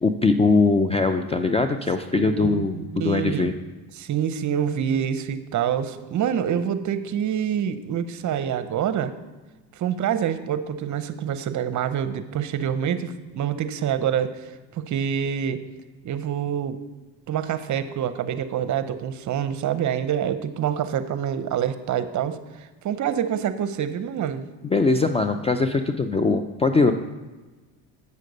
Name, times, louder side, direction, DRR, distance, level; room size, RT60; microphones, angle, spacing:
voice 1, 0.0-3.5 24.6-26.9, left 3 dB, 15° left, 8 dB, 0.3 m, -21 dB
voice 2, 2.1-3.5 4.0-9.1 9.8-15.6 16.0-16.8 17.3-24.5, right 9 dB, 45° right, 11 dB, 0.7 m, -26 dB
8.4 x 6.4 x 5.3 m, 1.2 s
supercardioid pair, 95°, 41 cm